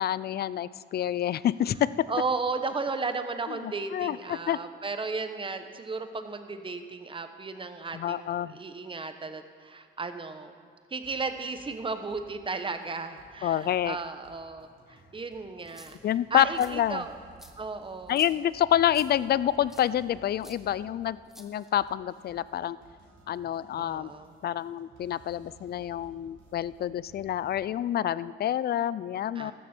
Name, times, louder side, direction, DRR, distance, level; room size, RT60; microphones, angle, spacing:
voice 1, 0.0-1.9 3.5-3.6 3.9-4.6 7.9-8.6 13.4-14.0 16.0-17.0 18.1-22.8 23.3-24.1 24.4-29.5, left 11 dB, 55° left, 18 dB, 0.4 m, -28 dB
voice 2, 2.1-10.6 10.9-17.1 17.6-18.3 23.8-24.3 29.3-29.5, right 4 dB, 25° right, 8 dB, 1.1 m, -35 dB
sound 1, 11.0-11.8 12.1-12.5 12.8-12.9 13.2-27.6, right 2 dB, 70° right, 4.0 m, -57 dB
sound 2, 15.6-16.1 16.5-16.7 17.4-17.5 18.1-18.3 18.9-19.1 19.7-19.9 20.4-20.6 21.3-21.9, equal, ahead, 1.3 m, -51 dB
14.0 x 13.0 x 4.4 m, 2.2 s
cardioid pair, 90°, 20 cm